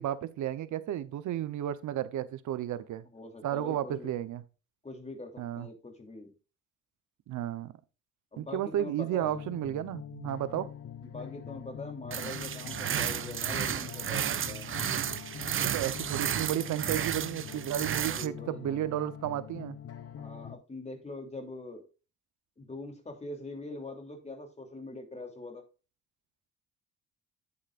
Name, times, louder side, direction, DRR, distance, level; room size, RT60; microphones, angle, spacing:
voice 1, 0.0-3.0 3.4-4.4 5.4-5.7 7.3-7.7 8.4-10.7 15.4-19.8, right 12 dB, 75° right, 0.9 m, -33 dB
voice 2, 3.1-4.2 4.8-6.3 8.3-9.4 11.0-14.7 17.7-18.6 20.1-21.8 22.6-25.6, left 2 dB, 20° left, 3.0 m, -43 dB
sound 1, 9.2-20.6, left 8 dB, 50° left, 1.2 m, -44 dB
sound 2, 12.1-18.3, right 9 dB, 45° right, 0.7 m, -32 dB
9.4 x 8.4 x 2.5 m
cardioid pair, 90°, 30 cm